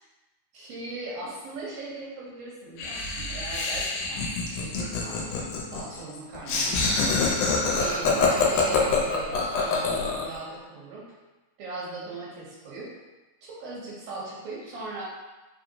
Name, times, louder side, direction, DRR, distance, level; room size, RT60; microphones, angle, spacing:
voice 1, 0.5-5.3 5.7-7.2 7.7-11.1 11.6-12.9 13.4-15.0, right 2 dB, 70° right, -6 dB, 1.5 m, -39 dB
Laughter, 2.8-10.4, left 4 dB, 85° left, 2.2 m, -26 dB
4.8 x 2.9 x 2.7 m, 1.1 s
omnidirectional pair, 3.6 m